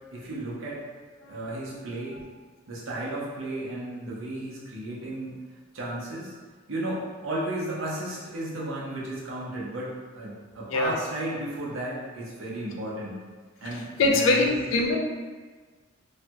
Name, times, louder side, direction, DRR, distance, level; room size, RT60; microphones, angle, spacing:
voice 1, 0.1-0.8 1.3-2.2 2.7-5.4 5.7-6.3 6.7-13.2 13.6-14.6, right 1 dB, 90° right, -6 dB, 0.8 m, -34 dB
voice 2, 1.2-1.8 10.7-11.0 13.6-15.0, left 2 dB, 85° left, 2 dB, 0.4 m, -24 dB
3.2 x 2.2 x 2.9 m, 1.4 s
head